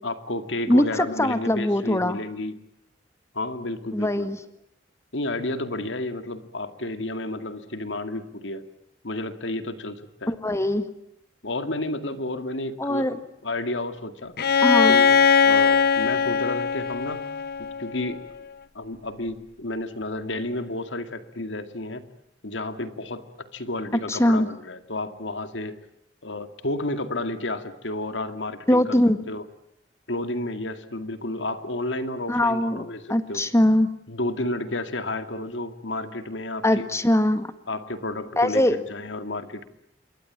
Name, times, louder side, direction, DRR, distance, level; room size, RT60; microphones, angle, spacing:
voice 1, 0.0-2.6 3.3-4.3 5.1-8.7 9.0-10.3 11.4-13.1 13.4-14.4 14.9-17.3 17.6-18.2 18.7-22.0 22.4-25.8 26.2-29.0 29.3-29.4 30.1-33.4 34.1-36.9 37.7-39.7, left 2 dB, 80° left, 9 dB, 2.2 m, -31 dB
voice 2, 0.7-2.2 3.9-4.4 10.3-10.9 12.8-13.2 14.6-15.0 24.1-24.5 28.7-29.2 32.3-33.9 36.6-37.5 38.4-38.8, left 1 dB, 15° left, 10 dB, 1.8 m, -21 dB
Bowed string instrument, 14.4-18.1, left 6 dB, 60° left, 1.0 m, -20 dB
27.5 x 22.5 x 8.8 m, 0.76 s
head